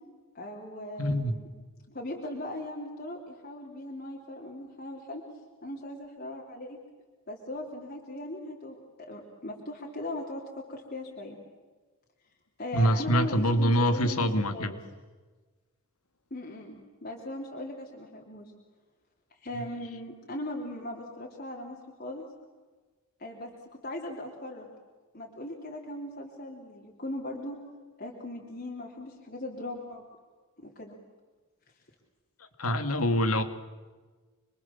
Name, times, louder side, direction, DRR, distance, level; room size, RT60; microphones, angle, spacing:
voice 1, 0.3-1.5 1.9-5.2 5.6-6.8 7.3-11.4 12.6-14.8 16.3-18.5 19.3-22.3 23.2-24.7 25.1-27.6 28.0-30.0 30.6-30.9, left 1 dB, 45° left, -2 dB, 3.5 m, -39 dB
voice 2, 1.0-1.4 12.7-14.8 19.5-19.7 32.6-33.4, equal, 90° left, 9 dB, 2.3 m, -25 dB
28.0 x 23.5 x 7.3 m, 1.3 s
head